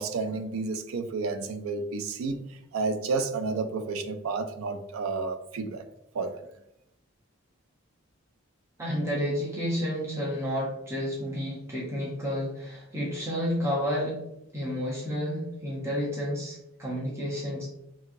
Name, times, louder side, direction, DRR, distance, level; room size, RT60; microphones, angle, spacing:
voice 1, 0.0-2.4 2.7-5.8 6.1-6.4, right 4 dB, 80° right, 8 dB, 0.3 m, -31 dB
voice 2, 8.8-14.2 14.5-17.7, equal, 15° right, -5 dB, 0.6 m, -30 dB
2.9 x 2.6 x 2.5 m, 0.81 s
head